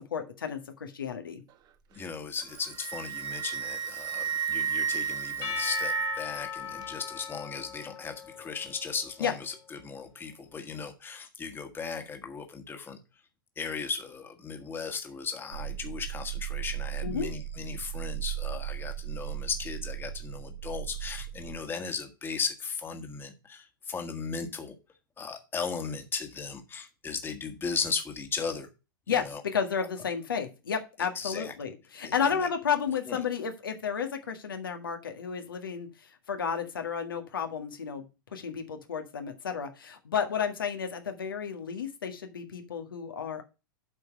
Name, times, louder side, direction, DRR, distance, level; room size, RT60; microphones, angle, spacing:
voice 1, 0.1-1.4 9.2-9.3 17.0-17.3 29.1-38.1 38.3-43.4, left 7 dB, 75° left, 5 dB, 1.7 m, -32 dB
voice 2, 1.9-13.0 13.6-24.7 25.2-28.7 29.1-29.4 31.2-31.5 32.0-32.1 32.4-32.5 33.1-33.2, left 5 dB, 20° left, 6 dB, 1.7 m, -36 dB
Wind instrument woodwind instrument, 2.4-6.4, right 8 dB, 35° right, 1.2 m, -32 dB
Percussion / Church bell, 5.4-9.6, left 9 dB, 40° left, 2.4 m, -39 dB
sound 1, 15.5-21.6, right 12 dB, 85° right, 1.3 m, -36 dB
8.2 x 5.0 x 6.4 m, 0.29 s
hypercardioid pair, 100°, 11 cm